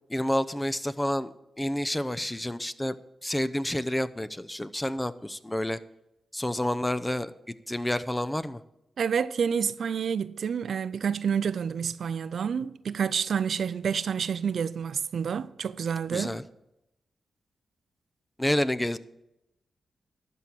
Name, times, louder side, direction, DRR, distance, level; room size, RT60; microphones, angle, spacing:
voice 1, 0.1-2.9 3.2-5.8 6.3-8.6 16.1-16.4 18.4-19.0, left 1 dB, 15° left, 0.6 m, -29 dB
voice 2, 9.0-16.4, right 7 dB, 70° right, 0.4 m, -29 dB
12.0 x 4.5 x 8.3 m
supercardioid pair, 45°, 0 cm